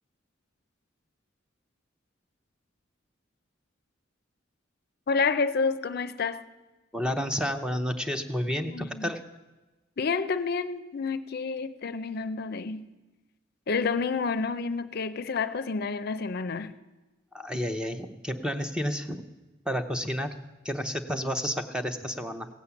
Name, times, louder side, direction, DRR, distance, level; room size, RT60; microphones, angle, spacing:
voice 1, 5.1-6.4 8.7-9.1 10.0-12.8 13.7-16.7, left 4 dB, 55° left, 0.5 m, -29 dB
voice 2, 6.9-9.2 17.3-19.2 19.7-20.4 20.6-22.5, equal, 5° right, 0.7 m, -30 dB
16.0 x 8.3 x 7.1 m
head